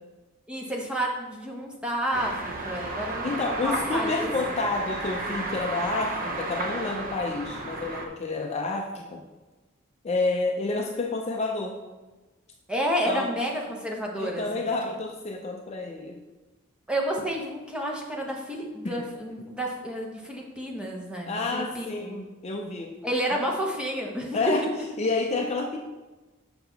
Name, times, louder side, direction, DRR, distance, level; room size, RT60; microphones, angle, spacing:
voice 1, 0.5-4.3 12.7-14.7 16.9-22.2 23.0-24.4, equal, 5° right, -1 dB, 0.9 m, -30 dB
sound 1, 2.1-8.1, right 2 dB, 40° right, 0.8 m, -33 dB
voice 2, 3.2-9.3 10.0-11.8 13.1-13.3 14.2-16.2 18.8-19.1 21.3-22.9 23.3-23.4 24.3-24.7 25.0-25.8, left 3 dB, 30° left, 2 dB, 0.5 m, -29 dB
6.8 x 5.6 x 3.9 m, 1.2 s
head